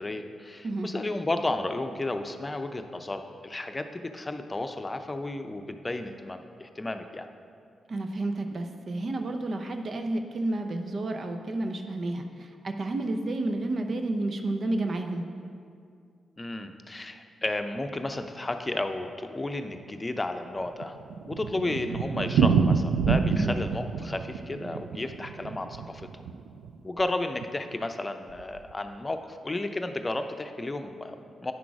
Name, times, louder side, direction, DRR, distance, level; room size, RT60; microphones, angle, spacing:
voice 1, 0.0-7.3 16.4-21.0 21.2-26.2 26.8-31.5, left 2 dB, 30° left, 7 dB, 0.7 m, -33 dB
voice 2, 7.9-15.2 23.3-23.6, right 2 dB, 55° right, 5 dB, 0.7 m, -31 dB
Thunder, 20.5-26.7 27.0-27.1 27.4-27.5 27.7-27.8 28.4-28.7, right 6 dB, 80° right, 0.3 m, -27 dB
9.6 x 6.0 x 4.8 m, 2.3 s
hypercardioid pair, 40°, 0 cm